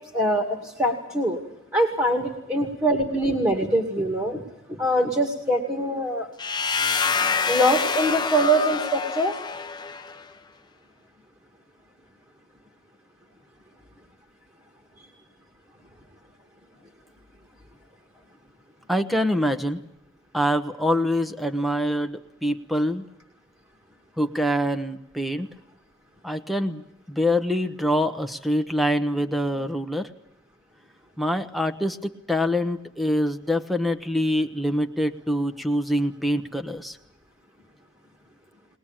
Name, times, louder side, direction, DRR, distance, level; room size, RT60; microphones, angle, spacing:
voice 1, 0.1-1.4 1.7-4.4 4.7-6.3 7.5-9.3 15.0-15.1, right 1 dB, 15° right, 3 dB, 2.2 m, -23 dB
sound 1, 6.4-10.2, left 5 dB, 20° left, 0.9 m, -26 dB
voice 2, 18.9-19.8 20.3-23.0 24.2-25.5 26.2-30.1 31.2-37.0, equal, ahead, 7 dB, 1.1 m, -25 dB
21.5 x 20.5 x 8.9 m, 0.82 s
head